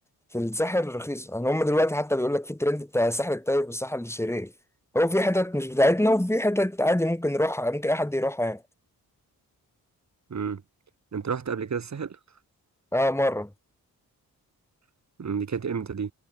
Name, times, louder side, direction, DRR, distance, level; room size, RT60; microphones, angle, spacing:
voice 1, 0.3-4.5 4.9-8.6 12.9-13.5, left 1 dB, 5° left, 6.4 m, -25 dB
voice 2, 10.3-10.6 11.1-12.2 15.2-16.1, right 6 dB, 50° right, 2.4 m, -30 dB
cardioid pair, 85°, 37 cm